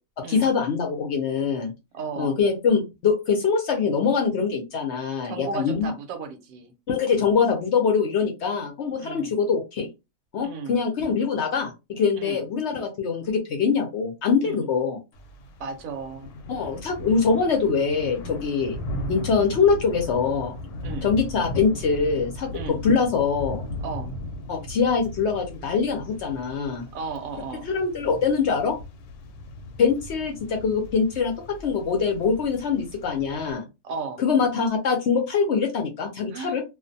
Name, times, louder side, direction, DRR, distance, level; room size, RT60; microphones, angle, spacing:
voice 1, 0.2-1.7 2.2-5.9 6.9-9.9 10.3-15.0 16.5-18.8 19.1-20.6 21.0-22.5 22.8-23.6 24.5-26.9 27.6-28.8 29.8-33.6 34.2-36.6, left 5 dB, 65° left, 3 dB, 0.8 m, -23 dB
voice 2, 1.9-2.4 5.2-6.7 9.0-9.3 10.4-10.8 12.1-12.4 14.4-14.7 15.6-16.4 20.8-21.1 22.5-22.8 23.8-24.1 26.9-27.7 33.8-34.2 36.3-36.6, right 4 dB, 75° right, 6 dB, 1.0 m, -34 dB
Thunder / Rain, 15.1-33.5, left 1 dB, 90° left, 1.1 m, -37 dB
2.4 x 2.2 x 2.6 m, 0.25 s
omnidirectional pair, 1.5 m